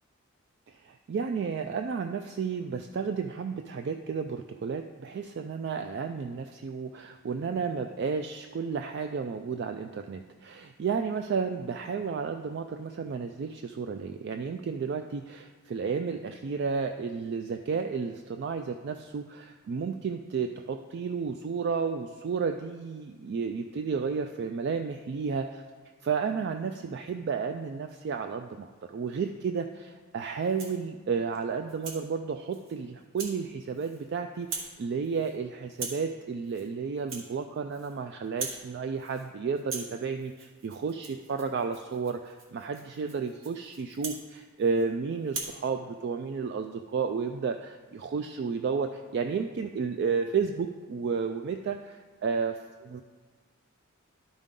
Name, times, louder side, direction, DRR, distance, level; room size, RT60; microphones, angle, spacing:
voice 1, 0.7-25.6 26.0-52.6 52.9-53.0, right 5 dB, 55° right, 6 dB, 0.3 m, -32 dB
Rattle (instrument), 30.4-30.8 31.3-32.0 32.5-32.7 33.2-33.4 33.7-34.1 34.4-34.8 35.0-35.4 35.7-36.1 36.4-36.7 37.0-38.0 38.2-38.7 39.0-39.3 39.6-44.9 45.2-45.6, right 4 dB, 70° right, 1.3 m, -41 dB
11.5 x 5.2 x 3.7 m, 1.4 s
head